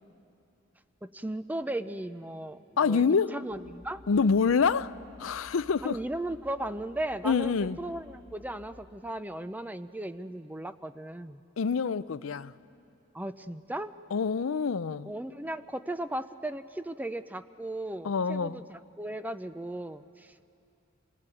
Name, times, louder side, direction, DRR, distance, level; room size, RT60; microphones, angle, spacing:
voice 1, 1.0-4.0 5.8-11.4 13.1-13.9 15.1-20.6, right 1 dB, 10° right, 0.5 m, -36 dB
voice 2, 2.8-3.4 4.1-6.0 7.2-7.8 11.6-12.5 14.1-15.1 18.0-18.6, left 5 dB, 90° left, 0.5 m, -26 dB
sound 1, 3.5-8.9, left 1 dB, 65° right, 3.1 m, -55 dB
27.0 x 18.0 x 9.2 m
head